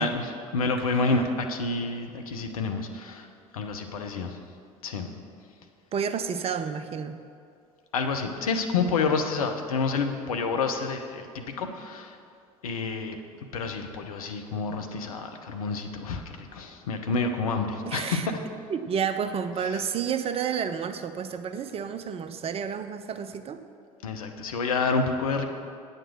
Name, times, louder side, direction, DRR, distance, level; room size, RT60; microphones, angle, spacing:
voice 1, 0.0-3.3 3.5-4.4 4.8-5.1 7.9-12.2 12.6-13.2 13.5-18.2 24.0-25.4, left 4 dB, 75° left, 5 dB, 0.8 m, -28 dB
voice 2, 0.9-1.2 5.9-7.2 17.9-18.3 18.7-23.6, right 7 dB, 30° right, 10 dB, 0.6 m, -30 dB
9.0 x 6.6 x 6.0 m, 2.4 s
figure-of-eight pair, 60°, 18 cm